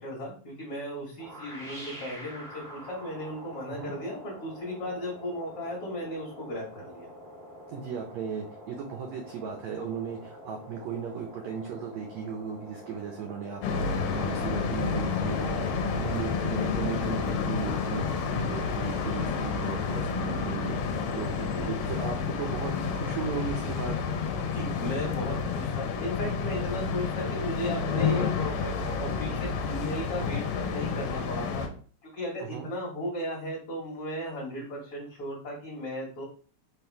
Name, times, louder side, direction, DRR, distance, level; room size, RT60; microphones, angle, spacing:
voice 1, 0.0-7.1 21.4-21.7 24.5-30.4 30.7-31.7 32.0-36.2, equal, 50° left, -4 dB, 1.9 m, -36 dB
sound 1, 1.2-20.0, equal, ahead, 0.7 m, -47 dB
voice 2, 7.7-15.7 15.9-21.4 21.6-24.0 26.4-26.6 32.4-32.7, right 6 dB, 85° right, 3 dB, 1.5 m, -36 dB
sound 2, 13.6-31.7, left 5 dB, 70° left, 2.1 m, -30 dB
6.1 x 3.3 x 4.6 m, 0.42 s
omnidirectional pair, 4.2 m